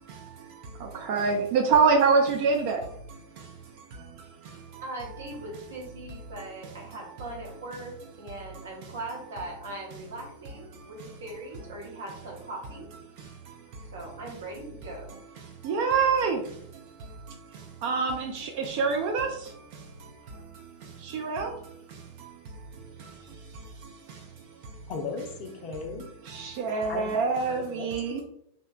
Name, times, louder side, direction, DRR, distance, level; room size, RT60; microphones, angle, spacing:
voice 1, 0.0-4.8 10.7-10.9 13.2-13.9 15.4-24.8 26.2-28.2, right 5 dB, 45° right, 1 dB, 0.3 m, -29 dB
voice 2, 4.8-12.9 13.9-15.2, right 2 dB, 65° right, -1 dB, 0.7 m, -40 dB
voice 3, 24.9-26.0 26.9-27.1 27.5-28.2, left 4 dB, 40° left, 4 dB, 0.4 m, -36 dB
2.7 x 2.1 x 2.3 m, 0.69 s
figure-of-eight pair, 90°, 0 cm